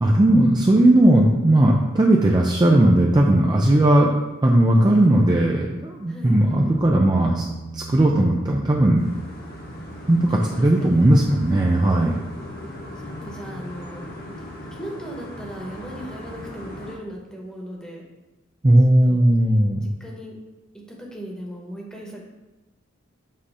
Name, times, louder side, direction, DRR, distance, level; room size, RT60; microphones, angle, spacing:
voice 1, 0.0-4.1 4.4-7.5 7.7-9.0 10.1-12.1 18.6-19.9, right 1 dB, 20° right, -1 dB, 0.4 m, -17 dB
voice 2, 6.1-6.8 10.4-11.1 13.0-14.1 14.7-18.0 19.0-19.2 20.0-20.4 20.9-22.2, equal, 5° left, -2 dB, 1.1 m, -37 dB
sound 1, 6.5-14.1 17.1-17.2, right 3 dB, 70° left, 0.9 m, -41 dB
sound 2, 9.0-16.9, left 1 dB, 50° left, 1.3 m, -37 dB
7.5 x 2.8 x 4.8 m, 1.1 s
head